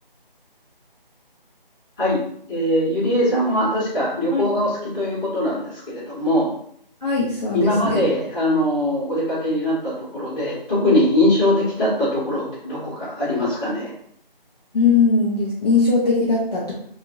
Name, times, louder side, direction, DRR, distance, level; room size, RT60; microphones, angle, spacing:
voice 1, 2.5-6.5 7.5-13.9, left 1 dB, 5° left, -16 dB, 1.4 m, -21 dB
voice 2, 7.0-8.1 14.7-16.7, left 4 dB, 45° left, -7 dB, 0.8 m, -20 dB
3.6 x 2.4 x 2.6 m, 0.65 s
figure-of-eight pair, 165°, 29 cm